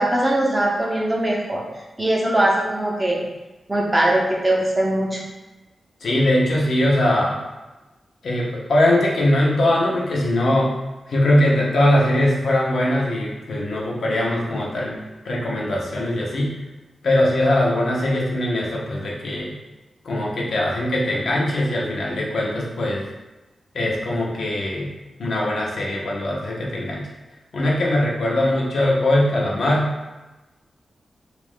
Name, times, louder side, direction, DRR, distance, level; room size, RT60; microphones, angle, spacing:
voice 1, 0.0-1.6 2.0-3.2 3.7-5.2, right 1 dB, 20° right, -2 dB, 0.6 m, -20 dB
voice 2, 6.0-7.4 8.2-10.7 11.1-15.0 15.2-16.5 17.0-19.5 20.0-23.0 23.7-24.9 25.2-27.1 27.5-29.9, left 1 dB, 75° left, -3 dB, 0.7 m, -21 dB
3.0 x 2.4 x 3.5 m, 1.1 s
wide cardioid pair, 125°, 0 cm